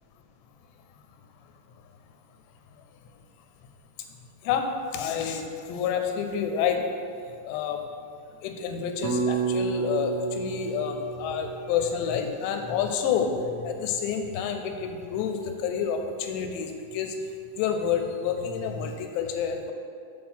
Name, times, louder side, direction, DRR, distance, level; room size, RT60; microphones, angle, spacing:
voice 1, 4.4-6.9 7.3-7.9 8.2-17.2 17.6-19.7, left 7 dB, 85° left, 5 dB, 2.9 m, -29 dB
sound 1, 9.0-13.3, right 6 dB, 90° right, 2.9 m, -31 dB
7.9 x 4.5 x 5.6 m, 2.3 s
omnidirectional pair, 4.9 m